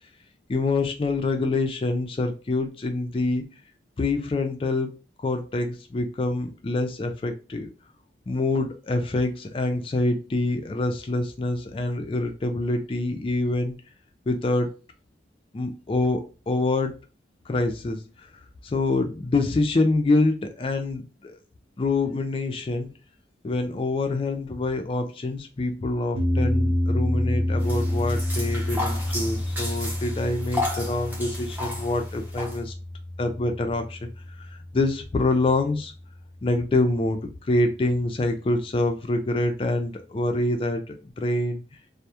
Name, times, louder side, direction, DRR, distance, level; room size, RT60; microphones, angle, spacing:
voice 1, 0.5-3.5 4.0-4.9 5.2-7.7 8.3-13.8 14.3-14.7 15.5-16.9 17.5-18.0 18.6-21.4 21.8-22.9 23.4-32.7 33.2-34.1 34.7-35.9 36.4-41.6, left 2 dB, 30° left, 6 dB, 0.3 m, -26 dB
sound 1, 26.1-36.4, left 1 dB, 55° right, 0.6 m, -28 dB
sound 2, 27.6-32.6, left 2 dB, 10° right, 0.7 m, -33 dB
2.2 x 2.0 x 2.7 m, 0.33 s
head